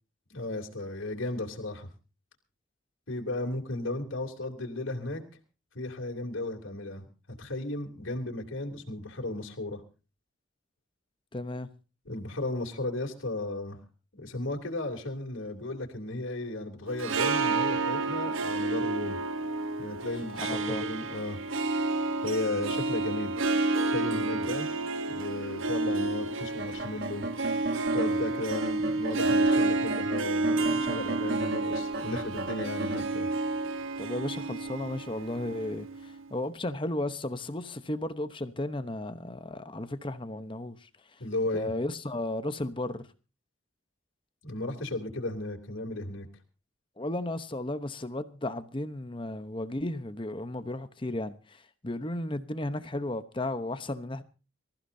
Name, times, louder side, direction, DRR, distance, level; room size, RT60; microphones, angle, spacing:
voice 1, 0.3-1.9 3.1-5.2 5.7-7.1 7.4-9.8 12.0-13.8 14.1-19.2 19.8-21.4 22.2-23.3 23.8-24.7 25.1-27.3 27.9-33.3 41.2-41.7 44.4-46.3, left 2 dB, 75° left, 3.1 m, -35 dB
voice 2, 11.3-11.7 20.3-20.9 34.0-40.9 41.5-43.0 47.0-54.2, left 1 dB, 25° left, 0.9 m, -34 dB
Harp, 16.9-36.2, right 3 dB, 80° right, 1.0 m, -30 dB
sound 1, 26.6-28.2 28.5-33.0, right 2 dB, 50° right, 1.2 m, -36 dB
25.5 x 15.0 x 2.7 m
head